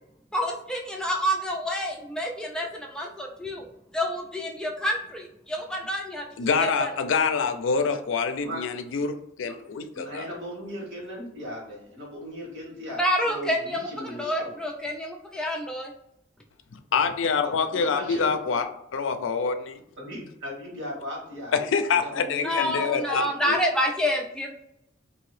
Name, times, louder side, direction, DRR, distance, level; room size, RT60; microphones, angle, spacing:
voice 1, 0.3-3.7 3.9-6.2 6.6-6.9 13.0-15.9 22.4-24.5, equal, 5° left, 0 dB, 0.3 m, -28 dB
voice 2, 6.4-9.1 9.4-10.2 16.9-18.7 18.9-19.8 21.6-23.6, left 5 dB, 85° left, 9 dB, 0.4 m, -26 dB
voice 3, 9.9-14.5 17.4-18.6 20.0-21.6 21.9-23.2, equal, 85° right, -2 dB, 1.4 m, -38 dB
2.8 x 2.6 x 3.2 m, 0.81 s
head